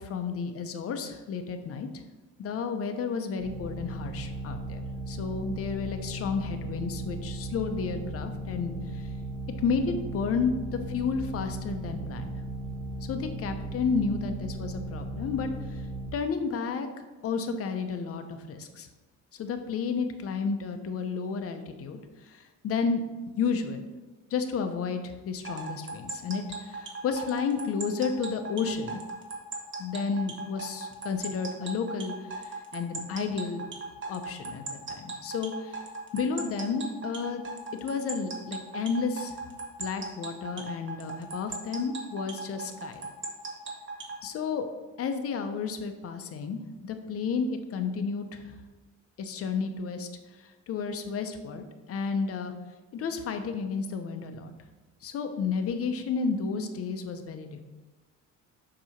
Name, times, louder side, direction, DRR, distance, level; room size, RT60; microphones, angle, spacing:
voice 1, 0.0-1.9 2.4-9.1 9.6-12.3 13.1-15.8 16.1-18.9 19.3-22.0 22.2-23.0 23.4-23.9 24.3-29.0 29.8-33.6 34.1-35.8 36.1-37.4 37.8-39.4 39.8-43.0 44.2-44.7 45.0-48.6 49.2-50.1 50.4-52.5 52.9-54.5 55.0-57.6, left 5 dB, 50° left, 7 dB, 0.7 m, -32 dB
sound 1, 3.4-16.1, right 1 dB, 25° left, 1.7 m, -36 dB
sound 2, 25.4-44.2, right 3 dB, 40° right, 1.0 m, -38 dB
7.5 x 2.9 x 5.7 m, 1.2 s
cardioid pair, 145°, 30 cm